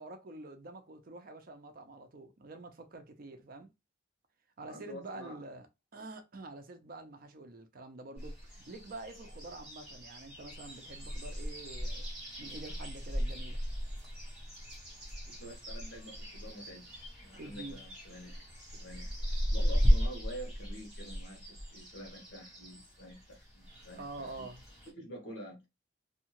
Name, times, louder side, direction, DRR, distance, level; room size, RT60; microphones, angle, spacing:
voice 1, 0.0-3.7 4.6-5.7 5.9-12.1 12.4-13.6 17.4-17.8 24.0-24.6, right 2 dB, 45° right, 0.5 m, -47 dB
voice 2, 4.7-5.4 15.2-19.1 19.5-24.5 25.0-25.6, equal, 70° left, 1.2 m, -48 dB
sound 1, 8.2-24.9, equal, 5° right, 1.2 m, -36 dB
2.7 x 2.3 x 2.9 m
head